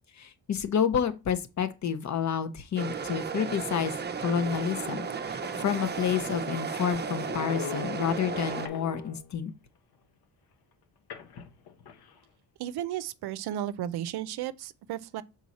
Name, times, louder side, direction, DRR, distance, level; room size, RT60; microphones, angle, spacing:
voice 1, 0.1-3.9 4.2-9.5, left 8 dB, 45° left, 0.8 m, -29 dB
sound 1, 2.8-8.7, right 6 dB, 25° right, 0.6 m, -34 dB
sound 2, 5.1-5.2 5.3-9.4 11.1-12.2, left 7 dB, 65° left, 1.0 m, -42 dB
voice 2, 12.6-15.2, right 11 dB, 70° right, 0.6 m, -34 dB
6.2 x 3.9 x 4.1 m
cardioid pair, 130°, 40 cm